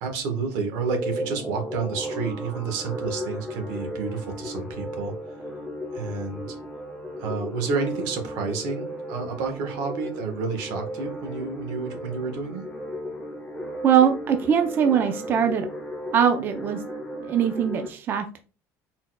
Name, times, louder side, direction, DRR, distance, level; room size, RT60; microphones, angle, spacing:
voice 1, 0.0-5.4 5.9-6.6 7.2-12.6, right 4 dB, 85° right, 4 dB, 1.2 m, -30 dB
sound 1, 0.7-17.9, equal, 10° left, 0.9 m, -35 dB
voice 2, 13.8-15.7 16.1-16.8 17.2-18.4, right 8 dB, 35° right, 6 dB, 0.4 m, -21 dB
4.2 x 4.1 x 2.2 m, 0.35 s
cardioid pair, 165°, 6 cm